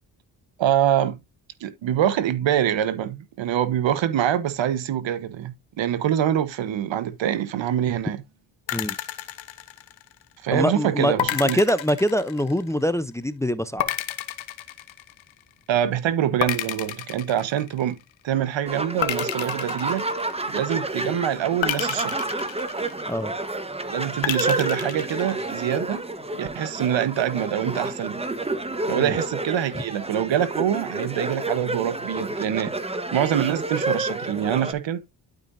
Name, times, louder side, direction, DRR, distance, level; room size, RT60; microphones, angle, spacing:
voice 1, 0.6-1.2 1.6-8.2 10.4-11.6 15.7-18.0 18.2-20.1 20.5-22.2 23.9-26.0 26.4-28.2 28.9-32.7 33.1-35.0, right 10 dB, 75° right, 1.2 m, -25 dB
sound 1, 8.7-10.3 11.2-12.8 13.8-15.5 16.4-18.0 19.0-20.7 21.6-23.3 24.2-25.6, left 12 dB, 80° left, 1.1 m, -31 dB
voice 2, 10.5-13.9 23.1-23.3 28.9-29.2, equal, 5° left, 0.6 m, -24 dB
sound 2, 18.7-34.7, right 2 dB, 15° right, 1.2 m, -30 dB
12.0 x 5.1 x 2.7 m
cardioid pair, 70°, 46 cm